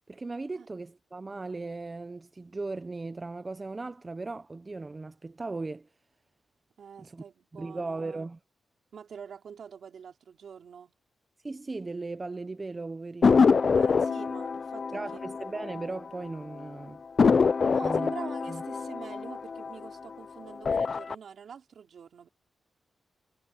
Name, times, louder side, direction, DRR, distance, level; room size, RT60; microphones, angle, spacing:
voice 1, 0.1-5.9 7.0-7.2 7.5-8.4 11.4-13.7 14.9-17.0 17.8-18.2 18.5-18.6, right 3 dB, 25° right, 0.6 m, -37 dB
voice 2, 6.8-8.3 8.9-10.9 13.7-15.2 17.7-22.3, right 7 dB, 70° right, 4.6 m, -46 dB
sound 1, 13.2-16.3 16.6-16.7 17.2-20.1 20.5-21.1, left 5 dB, 45° left, 0.4 m, -25 dB
wide cardioid pair, 120°, 0 cm